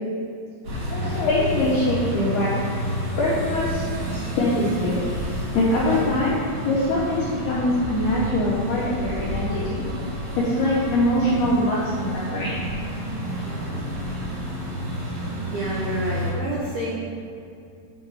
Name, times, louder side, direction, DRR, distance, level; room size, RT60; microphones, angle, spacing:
sound 1, 0.6-16.3, equal, 50° right, 1.8 m, -30 dB
voice 1, 0.9-2.5 3.2-5.0 5.5-6.3 6.6-9.8 10.4-12.6, left 1 dB, 80° left, -7 dB, 2.3 m, -23 dB
voice 2, 15.2-16.9, right 1 dB, 85° right, -6 dB, 2.1 m, -29 dB
8.9 x 5.0 x 4.8 m, 2.5 s
omnidirectional pair, 6.0 m